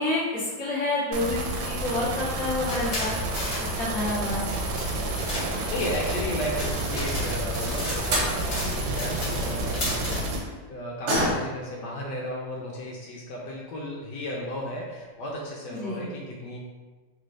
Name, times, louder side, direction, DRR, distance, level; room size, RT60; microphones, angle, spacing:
voice 1, 0.0-1.4 1.7-3.2 3.8-4.4 15.7-16.0, left 2 dB, 5° left, -10 dB, 0.7 m, -28 dB
sound 1, 1.1-10.4, right 2 dB, 80° right, 1.3 m, -30 dB
sound 2, 2.3-10.2, left 1 dB, 45° left, 0.9 m, -35 dB
voice 2, 4.9-16.6, equal, 75° left, -2 dB, 1.1 m, -35 dB
sound 3, 5.3-6.2 7.7-7.8 8.1-8.4 11.0-11.7 12.1-12.2 12.6-12.7 13.5-13.6 13.9-14.0 14.5-14.8 15.1-15.2 15.5-15.6, equal, 60° right, 1.4 m, -29 dB
3.2 x 3.2 x 2.5 m, 1.3 s
omnidirectional pair, 2.0 m